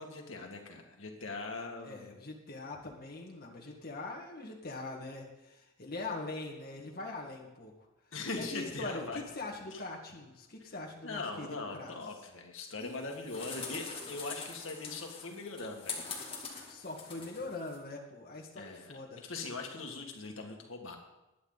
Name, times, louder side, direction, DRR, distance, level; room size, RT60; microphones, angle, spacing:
voice 1, 0.0-2.2 8.1-9.2 9.7-9.8 11.0-16.1 18.6-18.9 19.2-21.0, left 3 dB, 75° left, 2 dB, 2.0 m, -41 dB
voice 2, 1.8-7.7 8.4-11.9 16.7-19.3, left 2 dB, 50° left, -1 dB, 1.8 m, -42 dB
sound 1, 12.8-17.8, left 4 dB, 25° left, 2.5 m, -44 dB
21.0 x 9.3 x 4.0 m, 0.98 s
head